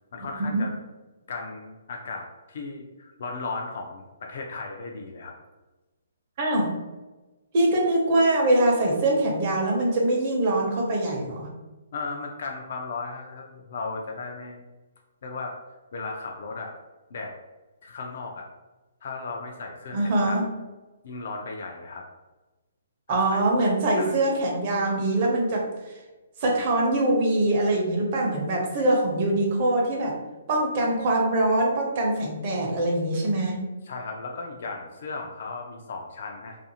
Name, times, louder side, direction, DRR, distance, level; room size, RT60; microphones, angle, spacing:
voice 1, 0.1-0.7 1.3-5.3 11.9-14.6 15.2-15.5 15.9-16.7 17.1-17.3 17.8-18.5 19.0-20.3 21.0-22.1 23.1-23.4 24.0-24.4 33.8-36.6, left 3 dB, 60° left, 1 dB, 0.4 m, -36 dB
voice 2, 6.4-6.7 7.5-11.5 19.9-20.5 23.1-25.7 26.4-30.2 30.5-33.6, right 1 dB, 40° right, -1 dB, 0.7 m, -23 dB
2.5 x 2.4 x 2.7 m, 1.1 s
hypercardioid pair, 155°, 0 cm